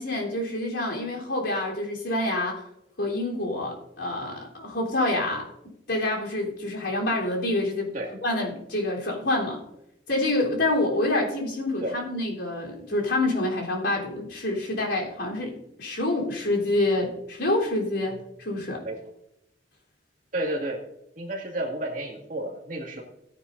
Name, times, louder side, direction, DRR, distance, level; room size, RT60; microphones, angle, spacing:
voice 1, 0.0-2.7 3.0-5.5 5.9-7.9 8.2-9.6 10.1-18.8, left 2 dB, 85° left, -2 dB, 3.8 m, -27 dB
voice 2, 20.3-20.8 21.2-23.0, right 1 dB, 50° right, 0 dB, 2.2 m, -31 dB
17.0 x 9.7 x 2.7 m, 0.83 s
head